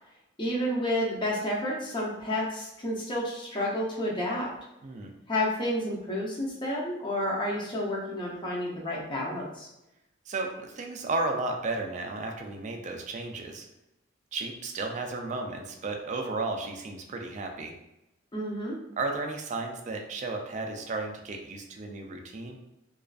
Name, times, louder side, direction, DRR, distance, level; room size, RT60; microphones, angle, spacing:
voice 1, 0.4-4.5 5.3-9.7 18.3-18.8, left 1 dB, 25° left, -3 dB, 0.5 m, -30 dB
voice 2, 10.3-13.7 14.3-17.7 19.0-22.6, right 3 dB, 35° right, 2 dB, 0.3 m, -33 dB
2.4 x 2.3 x 2.3 m, 0.89 s
head